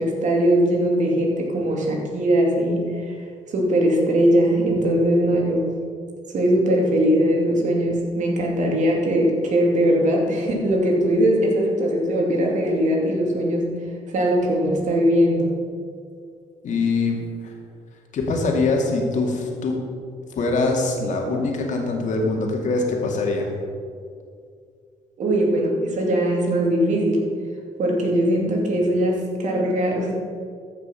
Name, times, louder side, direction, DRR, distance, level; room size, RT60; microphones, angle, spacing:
voice 1, 0.0-3.1 3.5-5.7 6.3-13.7 14.1-15.6 25.2-27.2 27.8-30.1, equal, 60° right, -1 dB, 2.6 m, -20 dB
voice 2, 16.6-17.5 18.1-19.8 20.4-23.5, left 3 dB, 65° left, 1 dB, 2.3 m, -23 dB
13.5 x 6.0 x 5.7 m, 2.2 s
supercardioid pair, 70°, 14 cm